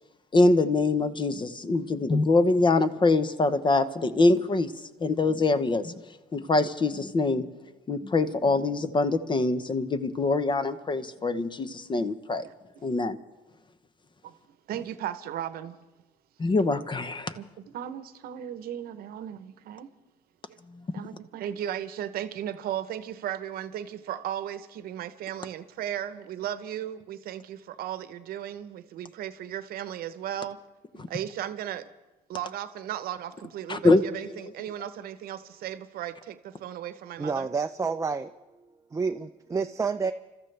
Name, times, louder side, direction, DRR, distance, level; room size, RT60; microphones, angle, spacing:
voice 1, 0.3-4.7 5.0-5.9 6.3-7.5 7.9-12.5 12.8-13.2 16.4-17.3 33.7-34.0, left 3 dB, 30° left, 0.9 m, -24 dB
voice 2, 14.7-15.8 17.4-19.9 20.5-20.6 20.9-30.6 30.9-31.9 32.3-37.5, right 11 dB, 65° right, 0.9 m, -36 dB
voice 3, 37.2-38.3 38.9-40.1, right 5 dB, 20° right, 0.5 m, -29 dB
29.5 x 13.5 x 3.4 m
supercardioid pair, 90°, 16 cm